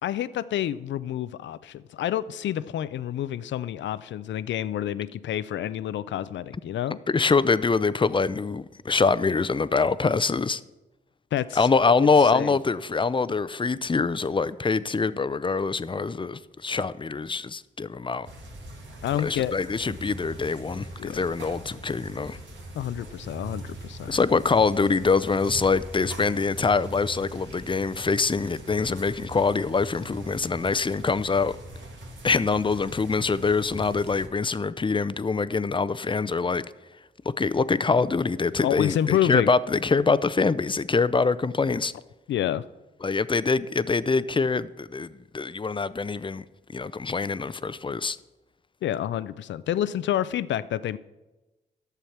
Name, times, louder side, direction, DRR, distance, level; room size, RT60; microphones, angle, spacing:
voice 1, 0.0-7.0 11.3-11.7 12.0-12.6 19.0-19.5 21.0-21.2 22.7-24.1 38.6-39.5 42.3-42.6 48.8-51.0, left 11 dB, 75° left, 0.5 m, -28 dB
voice 2, 7.1-10.6 11.6-18.3 19.2-22.4 24.1-31.6 32.2-36.6 37.4-41.9 43.0-46.4 46.7-48.2, left 4 dB, 25° left, 0.5 m, -24 dB
sound 1, 18.2-34.3, right 1 dB, 75° right, 2.0 m, -41 dB
11.5 x 7.0 x 5.9 m
supercardioid pair, 45°, 19 cm